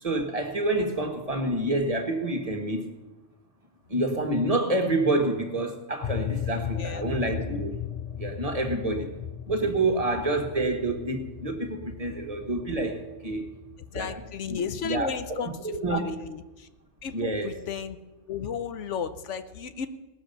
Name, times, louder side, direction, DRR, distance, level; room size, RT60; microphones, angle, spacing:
voice 1, 0.0-2.9 3.9-7.8 8.2-9.1 9.5-13.5 13.9-16.2 17.1-17.5, right 2 dB, 30° right, 1.4 m, -28 dB
sound 1, 6.0-14.5, left 10 dB, 45° left, 0.4 m, -37 dB
voice 2, 6.7-7.1 13.9-16.7 17.0-18.0 18.3-19.9, left 6 dB, 90° left, 1.1 m, -34 dB
19.0 x 6.5 x 6.7 m
omnidirectional pair, 1.2 m